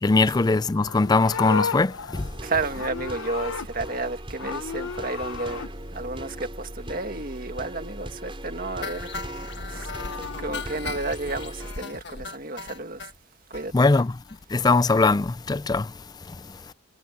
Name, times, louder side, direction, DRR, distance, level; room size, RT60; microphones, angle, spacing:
voice 1, 0.0-2.3 13.7-14.2 14.5-16.7, left 3 dB, 20° left, 0.4 m, -22 dB
Livestock farm animals working animals, 0.7-4.1 4.4-5.7 9.5-10.6, left 5 dB, 80° left, 0.8 m, -34 dB
sound 1, 2.1-11.8, right 1 dB, 25° right, 6.0 m, -38 dB
voice 2, 2.4-9.9 10.4-13.0 13.5-13.9, right 3 dB, 45° right, 1.9 m, -32 dB
sound 2, 8.8-13.1 13.5-13.6 14.0-14.1 14.3-14.4 14.7-14.8, left 4 dB, 55° left, 1.6 m, -37 dB
head